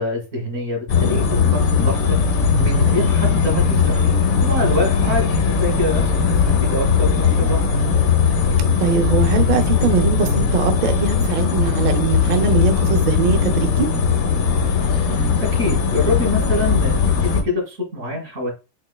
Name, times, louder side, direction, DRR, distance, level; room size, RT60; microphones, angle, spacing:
voice 1, 0.0-2.2 2.6-4.0 4.4-6.3 6.6-7.6 15.4-18.5, left 2 dB, 80° right, 2.1 m, -25 dB
sound 1, 0.9-17.4, left 5 dB, 85° left, 1.2 m, -18 dB
voice 2, 8.8-13.9, right 6 dB, 55° right, 0.5 m, -21 dB
4.3 x 3.1 x 2.2 m
omnidirectional pair, 1.4 m